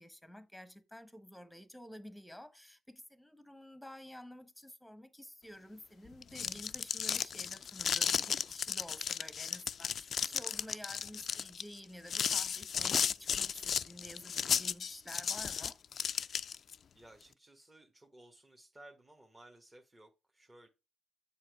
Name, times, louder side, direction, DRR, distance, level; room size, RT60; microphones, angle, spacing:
voice 1, 0.0-15.8, equal, ahead, 1.1 m, -51 dB
sound 1, 6.1-16.7, left 7 dB, 55° left, 0.3 m, -34 dB
voice 2, 13.0-13.3 16.9-20.7, right 1 dB, 20° right, 1.3 m, -58 dB
7.5 x 4.0 x 4.8 m
cardioid pair, 90°, 0 cm